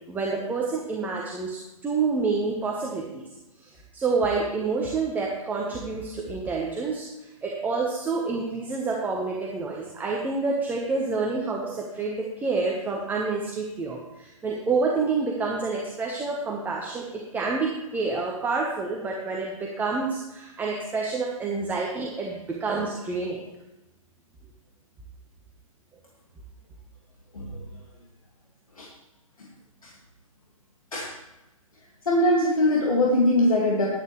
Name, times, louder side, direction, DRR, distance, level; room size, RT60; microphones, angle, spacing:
voice 1, 0.1-3.2 3.6-7.1 7.4-17.1 17.3-23.5, right 4 dB, 10° right, -2 dB, 1.1 m, -28 dB
voice 2, 32.1-33.9, left 1 dB, 75° left, -3 dB, 2.2 m, -21 dB
12.0 x 10.5 x 3.2 m, 1.0 s
figure-of-eight pair, 125°, 18 cm